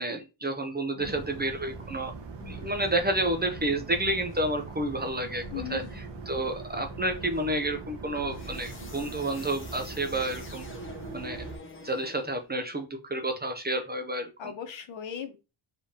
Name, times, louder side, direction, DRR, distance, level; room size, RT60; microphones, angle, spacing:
voice 1, 0.0-2.1 2.5-5.4 5.7-5.8 6.3-10.7 11.1-11.4 11.8-14.5, right 1 dB, 20° right, 5 dB, 0.5 m, -30 dB
sound 1, 1.0-11.6, right 4 dB, 60° right, 1.3 m, -42 dB
sound 2, 2.4-3.0 3.9-4.5 5.4-6.0 6.9-7.5 8.1-12.5, left 2 dB, 25° left, 0.8 m, -45 dB
voice 2, 5.5-6.1 14.4-15.4, left 9 dB, 65° left, 7 dB, 1.0 m, -38 dB
5.3 x 3.4 x 2.8 m, 0.28 s
wide cardioid pair, 175°, 48 cm